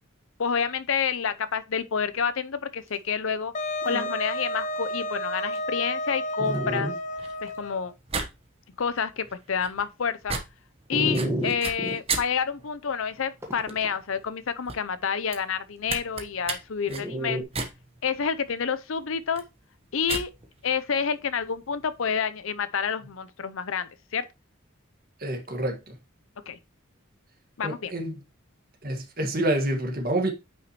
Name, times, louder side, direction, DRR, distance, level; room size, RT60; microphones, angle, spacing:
voice 1, 0.4-3.5 3.8-6.9 7.4-7.9 8.8-10.3 10.9-17.4 18.0-19.4 19.9-20.3 20.6-24.3 26.5-26.6 27.6-27.9, left 6 dB, 75° left, 0.6 m, -28 dB
Dog, 3.4-3.5 3.8-4.1 4.8-4.9 5.5-5.6 6.4-6.9 7.5-7.6 10.9-12.0 13.4-13.9 16.9-17.4, right 1 dB, 15° right, 1.5 m, -30 dB
Wind instrument woodwind instrument, 3.5-7.9, equal, 35° left, 0.7 m, -31 dB
sound 1, 6.8-22.1, right 4 dB, 30° right, 1.1 m, -38 dB
voice 2, 25.2-25.9 27.6-28.2 28.8-30.3, right 1 dB, 45° right, 1.7 m, -27 dB
9.2 x 5.7 x 3.0 m
head